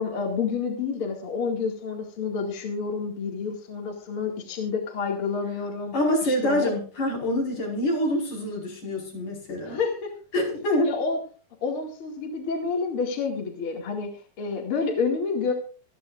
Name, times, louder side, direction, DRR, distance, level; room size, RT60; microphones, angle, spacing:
voice 1, 0.0-5.9 6.2-6.7 9.7-10.1 10.8-11.2 11.6-14.1 14.4-15.5, left 5 dB, 45° left, 1 dB, 2.7 m, -29 dB
voice 2, 5.9-9.8 10.3-10.9, left 1 dB, 65° left, -2 dB, 6.3 m, -26 dB
25.5 x 9.5 x 2.5 m, 0.37 s
omnidirectional pair, 3.8 m